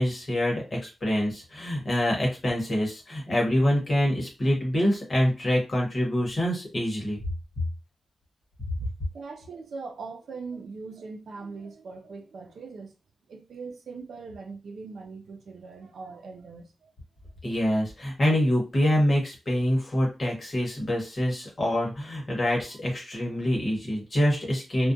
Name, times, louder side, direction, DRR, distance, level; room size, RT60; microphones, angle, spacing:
voice 1, 0.0-7.2 8.6-8.9 17.4-24.9, equal, 35° left, 1.0 m, -25 dB
voice 2, 9.1-12.9 13.3-16.9, right 4 dB, 75° right, 0.4 m, -41 dB
2.4 x 2.2 x 2.6 m
wide cardioid pair, 140°, 0 cm